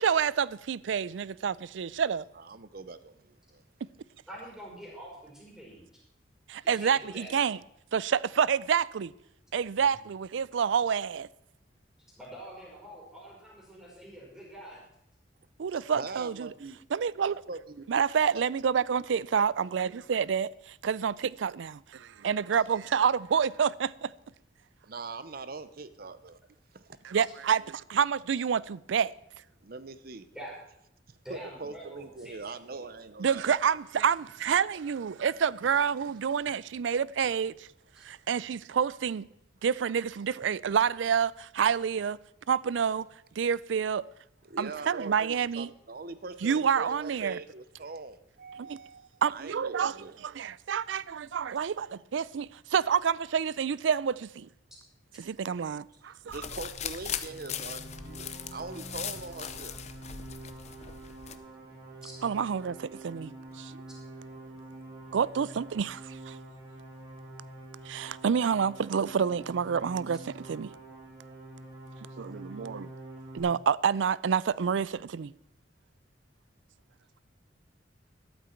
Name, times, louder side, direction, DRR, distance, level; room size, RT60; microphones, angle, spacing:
voice 1, 0.0-2.3 6.5-7.6 7.9-9.1 9.5-11.3 15.6-16.5 16.9-17.4 17.9-24.1 27.0-29.1 33.2-37.7 38.0-39.3 39.6-42.2 42.5-43.1 43.4-44.0 44.6-45.7 46.4-47.4 48.7-48.8 49.2-49.9 50.4-54.5 55.2-56.3 62.2-63.8 65.1-66.4 67.9-70.7 72.2-72.9 73.3-75.3, right 7 dB, 80° right, 0.4 m, -28 dB
voice 2, 2.3-3.6 14.7-14.8 15.7-16.8 17.5-18.0 18.3-18.4 24.8-26.4 26.7-27.0 29.6-30.3 31.1-33.5 34.7-34.8 35.1-35.2 38.0-38.3 44.4-50.2 55.9-59.8 60.5-62.0 63.4-65.2, right 3 dB, 55° right, 0.8 m, -43 dB
voice 3, 4.3-5.8 6.6-7.3 12.2-14.8 30.3-30.6 31.2-32.9 62.0-62.1, right 1 dB, 5° right, 4.9 m, -45 dB
sound 1, 56.3-61.4, left 8 dB, 35° left, 0.7 m, -39 dB
sound 2, 57.1-73.4, right 1 dB, 20° right, 3.0 m, -47 dB
13.5 x 12.0 x 4.5 m
head